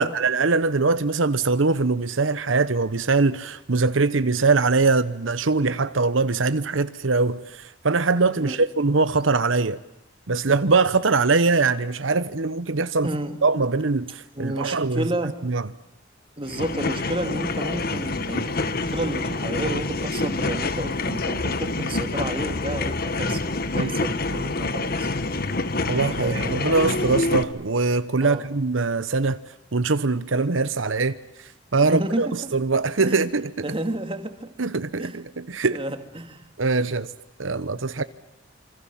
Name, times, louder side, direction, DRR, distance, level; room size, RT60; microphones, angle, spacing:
voice 1, 0.0-9.8 10.3-13.1 13.4-15.1 15.4-15.6 23.8-23.9 25.9-29.4 29.7-31.2 31.7-32.3 32.5-33.7 34.6-35.8 36.6-37.1 37.4-38.0, right 3 dB, 75° right, 1.0 m, -22 dB
voice 2, 13.0-13.4 14.4-15.4 16.4-23.4 23.7-25.1 25.9-26.6 27.3-27.4 28.2-28.5 31.8-32.6 33.1-33.3 33.6-34.5 35.0-35.2 35.7-36.4 38.0-38.1, right 1 dB, 25° right, 2.4 m, -31 dB
sound 1, 16.4-27.4, left 2 dB, 50° left, 1.5 m, -27 dB
28.0 x 25.5 x 7.4 m
head